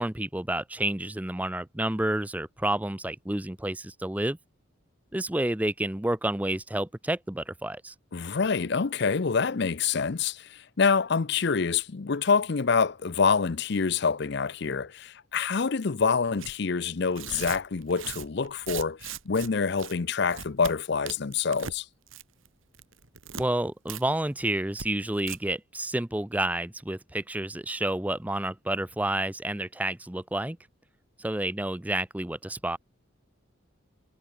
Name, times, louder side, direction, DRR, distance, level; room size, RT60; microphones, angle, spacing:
voice 1, 0.0-4.4 5.1-7.9 23.3-30.6 31.2-32.8, right 1 dB, 5° right, 0.5 m, -30 dB
voice 2, 8.1-21.9, left 5 dB, 55° left, 0.6 m, -26 dB
Tearing, 16.4-16.5 17.1-19.5 19.8-19.9 20.3-20.7 21.1-21.8 22.1-22.5 22.7-23.4 23.9-24.0 24.3-24.4 24.7-24.9 25.2-25.4, right 7 dB, 70° right, 2.3 m, -39 dB
head